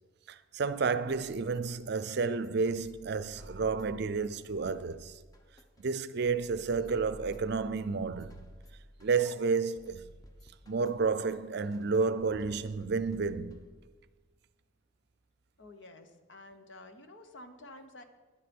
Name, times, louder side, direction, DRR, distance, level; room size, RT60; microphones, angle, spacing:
voice 1, 0.3-5.1 5.8-8.3 9.0-10.0 10.7-13.6, right 4 dB, 55° right, 0.5 m, -31 dB
sound 1, 1.1-14.0, equal, 20° left, 1.0 m, -54 dB
voice 2, 15.6-18.0, left 2 dB, 65° left, 1.1 m, -51 dB
11.0 x 9.6 x 5.4 m
head